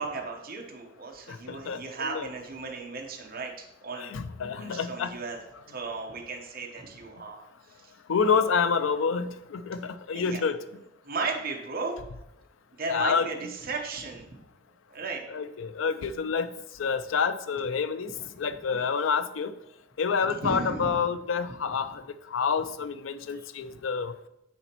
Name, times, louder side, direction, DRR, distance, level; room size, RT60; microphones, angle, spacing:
voice 1, 0.0-4.1 4.5-5.4 5.7-7.9 8.2-8.5 10.1-10.4 11.0-12.0 12.8-14.4 14.9-15.2 18.4-18.5 20.3-21.0 21.8-21.9 23.3-23.5, right 4 dB, 50° right, 1 dB, 1.0 m, -36 dB
voice 2, 1.5-2.3 4.0-5.1 8.1-10.6 12.9-13.3 15.3-16.5 16.8-18.1 18.4-19.5 20.0-22.0 22.3-24.1, left 5 dB, 75° left, 12 dB, 0.4 m, -28 dB
10.0 x 4.0 x 3.0 m, 0.85 s
head